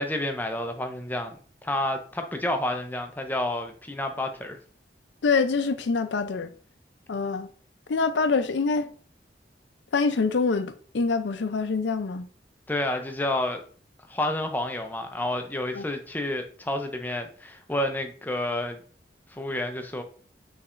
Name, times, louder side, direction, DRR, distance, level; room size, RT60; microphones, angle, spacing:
voice 1, 0.0-4.6 12.7-13.6 14.1-18.8 19.3-20.0, left 1 dB, 10° left, 0.5 m, -30 dB
voice 2, 5.2-6.5 7.1-7.5 7.9-8.9 9.9-12.3 15.7-15.9, left 4 dB, 80° left, 0.5 m, -25 dB
5.7 x 3.2 x 2.5 m
head